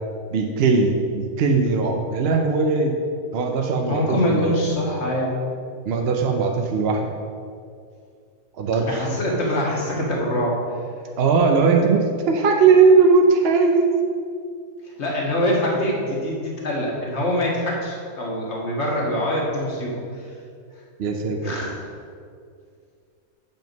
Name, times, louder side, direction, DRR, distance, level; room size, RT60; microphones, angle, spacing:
voice 1, 0.3-3.0 3.3-4.7 5.9-7.1 8.5-9.0 11.2-14.0 21.0-21.5, right 4 dB, 55° right, 3 dB, 0.7 m, -19 dB
voice 2, 3.9-5.5 8.8-10.6 14.8-20.3 21.4-21.8, left 1 dB, 50° left, -2 dB, 1.8 m, -24 dB
7.6 x 5.6 x 5.2 m, 2.3 s
omnidirectional pair, 1.5 m